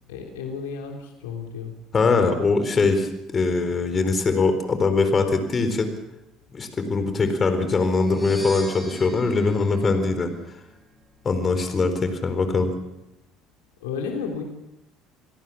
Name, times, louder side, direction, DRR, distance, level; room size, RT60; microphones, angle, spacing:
voice 1, 0.1-1.8 13.8-14.4, left 6 dB, 75° left, 3 dB, 3.5 m, -32 dB
voice 2, 1.9-5.9 6.5-10.3 11.2-12.7, left 3 dB, 35° left, 8 dB, 4.2 m, -22 dB
sound 1, 7.9-10.8, equal, 5° right, 6.7 m, -41 dB
28.0 x 17.5 x 7.3 m, 0.90 s
hypercardioid pair, 60°, 0 cm